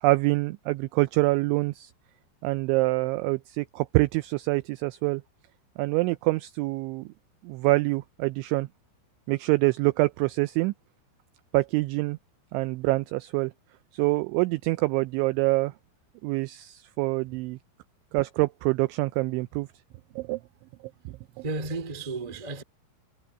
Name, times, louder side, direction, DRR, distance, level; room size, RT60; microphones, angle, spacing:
voice 1, 0.0-1.9 2.4-5.2 5.8-7.1 7.4-8.7 9.3-10.7 11.5-12.2 12.5-13.5 13.9-15.7 16.2-17.6 18.1-19.7 20.2-20.4 21.1-21.2, right 22 dB, 90° right, 2.6 m, -25 dB
voice 2, 21.4-22.6, right 3 dB, 35° right, 0.6 m, -33 dB
omnidirectional pair, 6.0 m